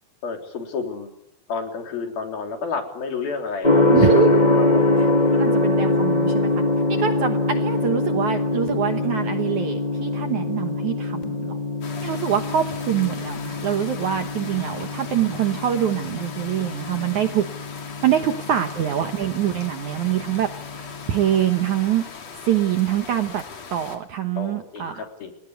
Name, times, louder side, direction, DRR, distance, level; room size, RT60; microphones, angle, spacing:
voice 1, 0.2-1.1 1.5-4.8 18.2-18.6 24.4-25.3, left 4 dB, 60° left, 5 dB, 5.3 m, -31 dB
Gong, 3.6-21.5, left 2 dB, 15° left, 1.6 m, -24 dB
voice 2, 3.9-4.4 5.3-6.6 6.9-11.5 12.0-17.5 18.0-20.5 20.8-22.0 22.5-23.4 23.7-25.1, right 10 dB, 65° right, 7 dB, 2.0 m, -24 dB
sound 1, 11.8-24.0, left 5 dB, 45° left, 3.6 m, -39 dB
29.5 x 20.5 x 8.2 m, 0.80 s
omnidirectional pair, 4.8 m